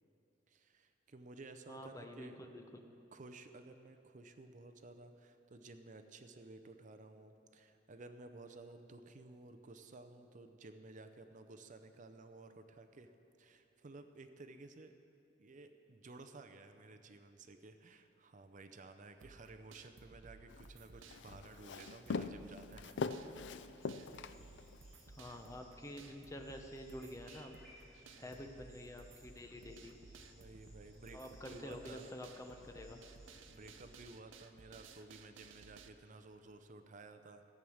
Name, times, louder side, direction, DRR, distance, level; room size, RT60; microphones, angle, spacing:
voice 1, 0.5-2.5 3.1-13.1 13.4-14.9 15.4-22.9 23.9-24.3 28.0-28.5 30.3-32.1 33.5-37.4, right 3 dB, 40° right, 8 dB, 0.6 m, -55 dB
voice 2, 1.7-2.8 20.5-20.6 25.2-27.6 28.2-29.9 31.1-33.0, left 1 dB, 15° left, 4 dB, 0.8 m, -49 dB
sound 1, 19.2-35.9, right 4 dB, 85° right, 0.7 m, -58 dB
Walk footsteps, 20.5-24.9, left 4 dB, 65° left, 0.4 m, -42 dB
sound 2, 23.8-34.0, equal, ahead, 3.6 m, -64 dB
14.0 x 8.7 x 6.3 m, 2.7 s
head